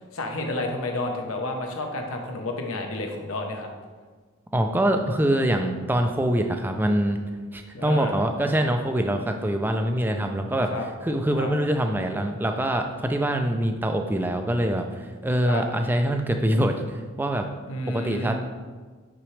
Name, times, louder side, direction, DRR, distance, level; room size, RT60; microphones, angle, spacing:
voice 1, 0.1-3.7 7.7-8.1 10.7-10.9 11.3-11.5 15.5-15.6 17.7-18.3, left 2 dB, 80° left, 3 dB, 0.9 m, -30 dB
voice 2, 4.5-7.2 7.5-10.7 11.0-17.5 17.9-18.3, right 1 dB, 10° right, 5 dB, 0.4 m, -24 dB
6.0 x 5.9 x 3.2 m, 1.4 s
head